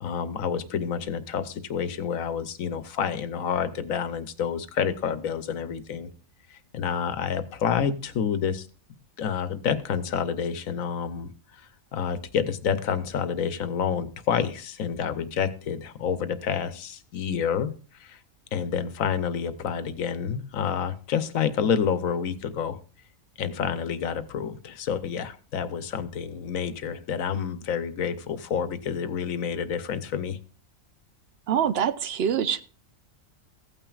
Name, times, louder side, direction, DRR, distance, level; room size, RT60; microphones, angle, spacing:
voice 1, 0.0-6.1 6.5-8.7 9.2-11.3 11.9-18.2 18.5-22.8 23.4-30.4, left 7 dB, 85° left, 12 dB, 1.2 m, -28 dB
voice 2, 31.5-32.6, right 8 dB, 60° right, 13 dB, 0.8 m, -25 dB
15.5 x 9.0 x 2.4 m, 0.38 s
omnidirectional pair, 1.4 m